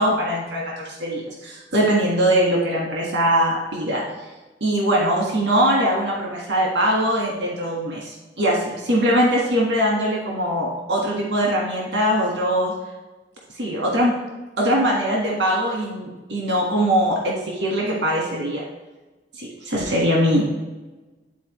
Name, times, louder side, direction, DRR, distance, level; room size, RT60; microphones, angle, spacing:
voice 1, 0.0-4.0 4.6-12.7 13.5-14.1 14.6-18.6 19.3-20.5, equal, 85° right, -2 dB, 1.5 m, -21 dB
10.0 x 4.0 x 3.1 m, 1.2 s
head